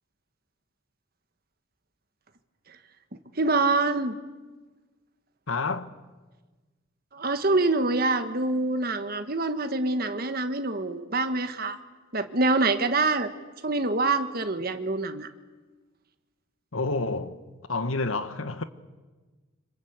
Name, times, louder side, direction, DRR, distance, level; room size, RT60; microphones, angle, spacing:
voice 1, 3.4-4.2 7.1-11.8 12.1-13.3 13.6-15.3, right 3 dB, 50° right, 1.5 m, -25 dB
voice 2, 5.5-6.0 16.7-17.4 17.7-18.6, left 3 dB, 85° left, 1.3 m, -29 dB
26.0 x 25.0 x 8.1 m
head